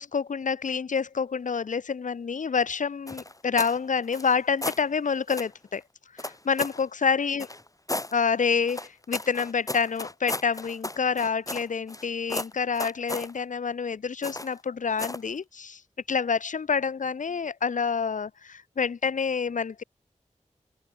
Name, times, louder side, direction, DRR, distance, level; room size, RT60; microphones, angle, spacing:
voice 1, 0.0-5.8 6.2-7.5 8.1-15.8 16.1-19.8, left 6 dB, 80° left, 1.1 m, -27 dB
sound 1, 3.1-3.8 4.1-4.8 5.3-5.5 6.2-6.8 7.4-8.1 8.7-12.0 12.3-13.3 14.2-14.6 15.0-15.3, left 2 dB, 25° left, 3.1 m, -34 dB
open air
cardioid pair, 40°, 13 cm